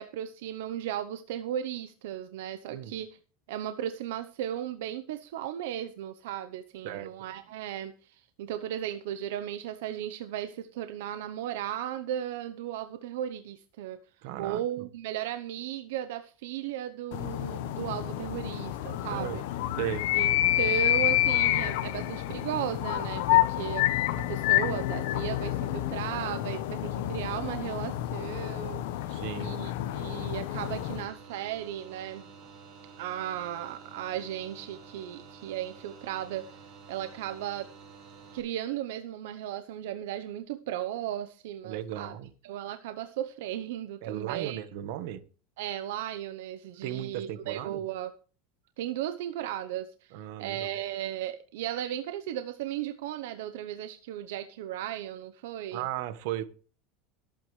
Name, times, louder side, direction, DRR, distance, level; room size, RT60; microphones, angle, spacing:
voice 1, 0.0-3.2 3.5-14.0 14.4-19.4 20.1-23.8 24.3-32.3 33.0-37.7 38.3-42.1 42.4-44.6 45.6-48.1 48.8-55.9, right 11 dB, 75° right, 0.9 m, -36 dB
voice 2, 14.2-14.9 19.1-19.4 19.8-20.0 29.1-29.5 41.6-42.3 44.0-45.2 46.8-47.8 50.1-50.7 55.7-56.4, right 12 dB, 55° right, 1.3 m, -36 dB
sound 1, 17.1-31.1, left 14 dB, 65° left, 1.0 m, -29 dB
sound 2, 30.5-38.4, right 5 dB, 35° right, 5.4 m, -50 dB
22.5 x 8.8 x 3.3 m
supercardioid pair, 175°, 0 cm